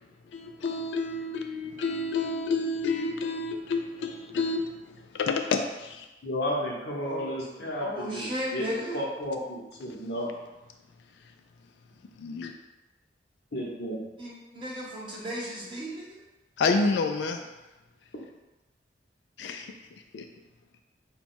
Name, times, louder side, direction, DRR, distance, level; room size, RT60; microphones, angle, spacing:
voice 1, 0.3-4.7 5.1-6.1 12.2-12.5 16.6-17.4 19.4-19.7 20.1-20.2, left 3 dB, 75° left, 5 dB, 0.3 m, -29 dB
voice 2, 6.2-10.3 13.5-14.1, equal, 55° left, -3 dB, 0.9 m, -33 dB
voice 3, 7.8-9.0 14.2-16.2, equal, 25° right, -5 dB, 1.0 m, -35 dB
4.2 x 2.3 x 4.3 m, 1.1 s
head